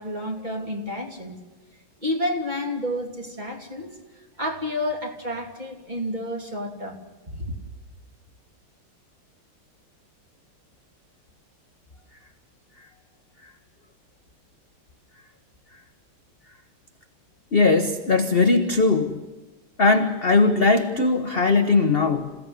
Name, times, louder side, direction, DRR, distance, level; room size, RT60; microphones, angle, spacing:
voice 1, 0.0-1.4 2.0-4.0 4.4-7.0 7.3-7.5, left 1 dB, 20° right, 1 dB, 3.2 m, -30 dB
voice 2, 17.5-19.2 19.8-22.4, left 3 dB, 35° left, 6 dB, 1.1 m, -19 dB
27.5 x 17.0 x 9.9 m, 1.2 s
omnidirectional pair, 2.3 m